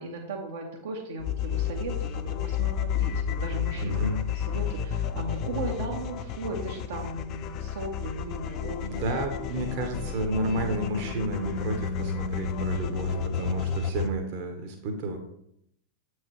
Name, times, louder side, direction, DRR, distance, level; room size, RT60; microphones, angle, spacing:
voice 1, 0.0-9.1 9.5-9.6, right 2 dB, 60° right, -1 dB, 0.9 m, -37 dB
sound 1, 1.2-14.1, left 8 dB, 35° left, 0.4 m, -31 dB
voice 2, 3.8-4.2 8.8-15.2, right 1 dB, 45° right, 4 dB, 1.0 m, -31 dB
sound 2, 10.1-13.7, left 5 dB, 60° left, 0.8 m, -37 dB
7.5 x 4.7 x 3.1 m, 0.74 s
figure-of-eight pair, 90°, 0 cm